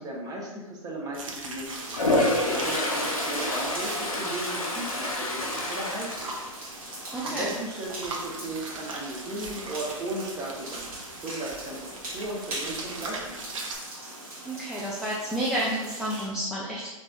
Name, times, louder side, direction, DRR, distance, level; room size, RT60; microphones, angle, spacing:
voice 1, 0.0-2.0 2.4-6.3 7.2-10.9 11.2-13.4, right 2 dB, 20° right, -3 dB, 0.7 m, -36 dB
sound 1, 1.1-13.8, right 3 dB, 65° right, 0.7 m, -40 dB
sound 2, 1.6-16.3, right 1 dB, 80° right, 1.2 m, -41 dB
Toilet flush, 1.9-7.1 7.5-7.8 12.3-12.4 12.7-13.4, left 1 dB, 90° left, 0.8 m, -28 dB
voice 2, 7.1-7.5 14.4-16.9, right 1 dB, ahead, -8 dB, 0.3 m, -30 dB
3.9 x 2.5 x 2.3 m, 1.1 s
hypercardioid pair, 115°, 18 cm